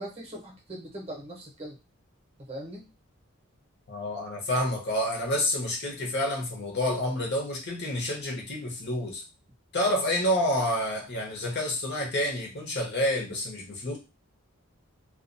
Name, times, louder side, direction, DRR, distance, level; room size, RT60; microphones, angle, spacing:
voice 1, 0.0-1.8 2.5-2.8, right 1 dB, 25° right, 0 dB, 0.7 m, -40 dB
voice 2, 3.9-9.2 9.7-14.0, left 1 dB, 50° left, 1 dB, 0.7 m, -28 dB
2.2 x 2.2 x 2.5 m, 0.27 s
head